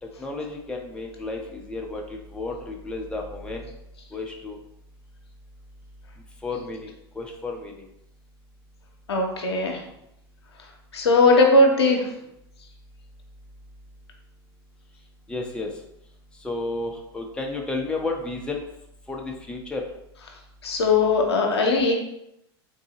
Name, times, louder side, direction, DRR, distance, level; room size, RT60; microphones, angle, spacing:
voice 1, 0.0-3.7 4.1-4.6 6.4-7.9 15.3-15.7 16.4-18.7 19.1-19.9, left 2 dB, 5° left, 0 dB, 0.6 m, -32 dB
voice 2, 9.1-9.8 10.9-12.1 20.6-21.9, left 2 dB, 85° left, 1 dB, 0.7 m, -19 dB
3.8 x 2.7 x 2.8 m, 0.81 s
hypercardioid pair, 90°, 13 cm